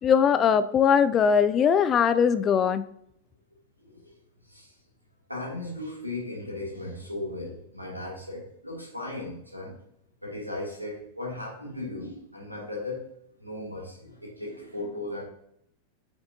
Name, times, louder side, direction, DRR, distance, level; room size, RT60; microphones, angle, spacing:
voice 1, 0.0-2.8, left 7 dB, 25° left, 12 dB, 0.4 m, -21 dB
voice 2, 3.8-4.2 4.5-4.7 5.3-9.8 10.2-13.0 13.4-15.2, left 2 dB, 90° right, -2 dB, 2.5 m, -36 dB
8.1 x 6.8 x 2.7 m, 0.71 s
figure-of-eight pair, 90°, 0 cm